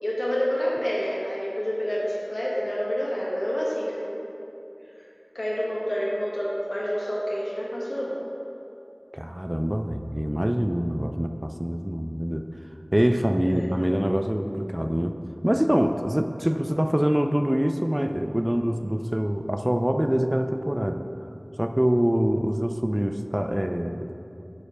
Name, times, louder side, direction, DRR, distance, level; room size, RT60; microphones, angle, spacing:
voice 1, 0.0-4.0 5.3-8.1 13.5-13.7, equal, 75° left, -6 dB, 1.5 m, -28 dB
voice 2, 9.1-12.5 12.9-15.2 15.4-21.0 21.6-24.1, equal, 20° right, 6 dB, 0.3 m, -25 dB
6.6 x 4.8 x 4.9 m, 2.8 s
wide cardioid pair, 40°, 0 cm